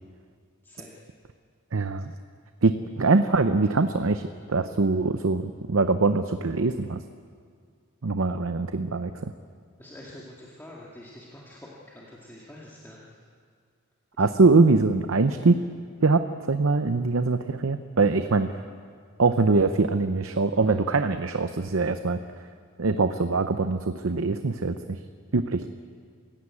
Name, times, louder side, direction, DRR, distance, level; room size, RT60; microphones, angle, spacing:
voice 1, 0.6-1.0 9.8-13.2 14.1-14.2, left 1 dB, 10° left, -5 dB, 2.2 m, -46 dB
voice 2, 1.7-2.1 2.6-7.0 8.0-9.3 14.2-15.6 16.0-18.6 19.2-22.2 22.8-25.0 25.3-25.7, right 3 dB, 70° right, 9 dB, 0.7 m, -23 dB
27.0 x 16.0 x 8.5 m, 2.1 s
head